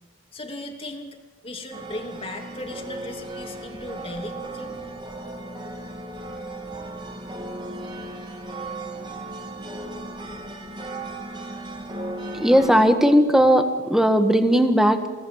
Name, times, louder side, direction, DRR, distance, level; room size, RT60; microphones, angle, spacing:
voice 1, 0.3-1.2 1.4-4.7, left 1 dB, 25° left, 3 dB, 2.8 m, -36 dB
sound 1, 1.7-12.9, right 2 dB, 20° right, 2.7 m, -36 dB
voice 2, 12.3-15.1, equal, ahead, 6 dB, 1.6 m, -17 dB
29.0 x 18.0 x 7.3 m, 1.3 s
head